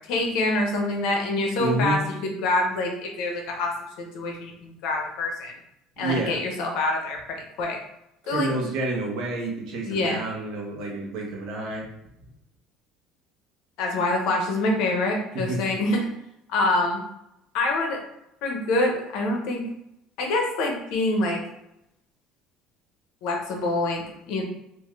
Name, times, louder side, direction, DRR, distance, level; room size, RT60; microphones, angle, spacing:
voice 1, 0.1-3.7 4.0-5.5 6.0-7.8 8.3-8.5 9.8-10.2 13.8-16.1 16.5-17.0 17.5-18.0 18.4-19.7 20.2-21.4 23.2-24.4, left 2 dB, 60° left, 1 dB, 0.7 m, -26 dB
voice 2, 1.6-2.0 6.0-6.4 8.2-11.8 15.3-15.6, right 2 dB, 55° right, -1 dB, 1.0 m, -28 dB
3.6 x 2.5 x 3.1 m, 0.83 s
cardioid pair, 180°, 0 cm